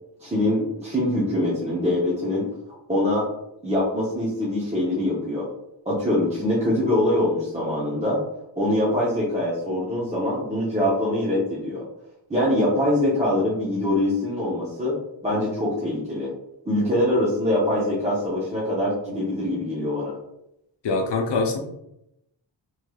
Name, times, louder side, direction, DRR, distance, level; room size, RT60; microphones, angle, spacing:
voice 1, 0.2-2.5 2.9-3.3 3.6-5.5 5.9-8.2 8.6-11.8 12.3-15.0 15.2-16.3 16.7-20.2, left 1 dB, 15° right, -7 dB, 0.7 m, -23 dB
voice 2, 20.8-21.6, left 3 dB, 65° left, 2 dB, 0.7 m, -23 dB
3.2 x 3.0 x 2.3 m, 0.81 s
wide cardioid pair, 145°, 45 cm